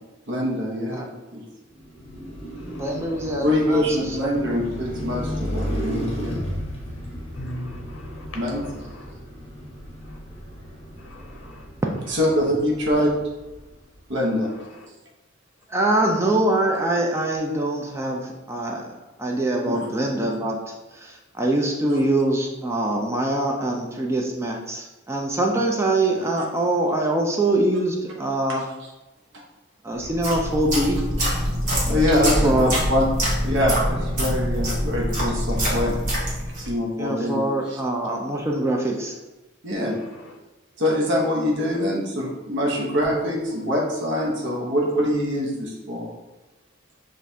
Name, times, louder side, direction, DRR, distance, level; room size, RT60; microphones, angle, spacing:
voice 1, 0.3-1.4 3.4-6.4 8.3-8.6 12.1-13.1 14.1-14.5 19.7-19.8 28.5-28.6 31.8-33.1 33.4-36.0 36.6-37.4 37.7-37.8 39.6-39.9 40.8-46.1, left 1 dB, 65° right, -2 dB, 0.9 m, -24 dB
Car passing by, 1.7-14.0, equal, 35° left, 1.0 m, -34 dB
voice 2, 2.7-4.2 4.5-4.6 15.7-18.9 19.2-28.7 29.8-31.0 32.4-32.7 37.0-39.2, right 1 dB, 15° right, 0 dB, 0.4 m, -24 dB
voice 3, 7.4-8.4 8.9-9.1 10.1-10.2 11.0-11.6, left 1 dB, 80° left, 2 dB, 0.5 m, -39 dB
sound 1, 30.0-36.7, equal, 45° right, 1.3 m, -24 dB
6.1 x 2.4 x 2.7 m, 1.1 s
head